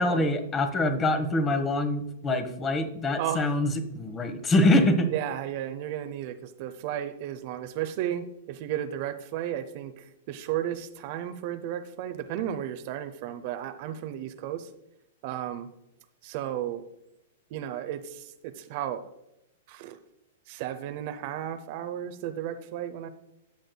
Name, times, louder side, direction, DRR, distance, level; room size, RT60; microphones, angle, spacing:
voice 1, 0.0-5.1, left 1 dB, 20° left, 7 dB, 1.2 m, -24 dB
voice 2, 3.2-3.6 5.1-14.7 15.2-15.7 16.2-16.8 17.5-19.0 19.7-20.0 20.5-23.1, right 11 dB, 50° right, 10 dB, 0.6 m, -34 dB
11.5 x 7.7 x 2.3 m, 0.87 s
figure-of-eight pair, 105°, 0 cm